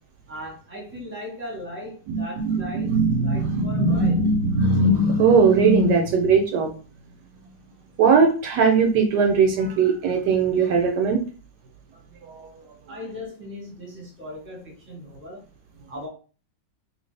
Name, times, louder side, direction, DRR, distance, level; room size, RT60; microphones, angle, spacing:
voice 1, 0.3-4.2 12.9-15.4 15.9-16.1, left 1 dB, 10° right, -3 dB, 1.0 m, -38 dB
voice 2, 2.1-6.7 8.0-11.2 12.2-12.5, right 4 dB, 75° right, 3 dB, 1.1 m, -19 dB
3.0 x 2.6 x 3.2 m, 0.37 s
omnidirectional pair, 2.0 m